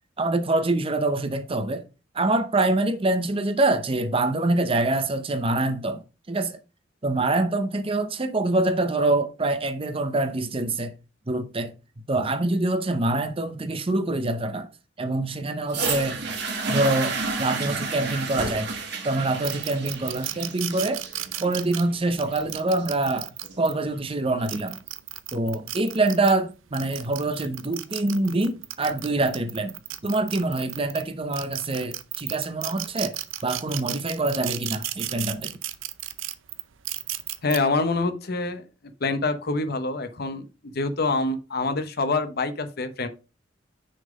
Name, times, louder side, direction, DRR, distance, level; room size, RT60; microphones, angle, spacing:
voice 1, 0.2-1.8 2.1-6.0 6.3-6.6 7.0-10.9 11.3-11.7 12.1-14.7 15.0-16.2 16.7-18.7 19.0-21.0 21.4-23.3 23.6-24.8 25.3-29.7 30.0-33.2 33.4-35.5, right 2 dB, 30° right, 0.7 m, -25 dB
sound 1, 15.7-23.7 24.5-24.6, right 3 dB, 60° right, 1.9 m, -31 dB
sound 2, 19.4-23.7 24.3-26.3 26.7-31.0 31.3-37.6, right 14 dB, 85° right, 0.6 m, -33 dB
voice 2, 37.4-38.6 39.0-43.1, left 3 dB, 55° left, 0.9 m, -26 dB
6.4 x 3.8 x 5.1 m
head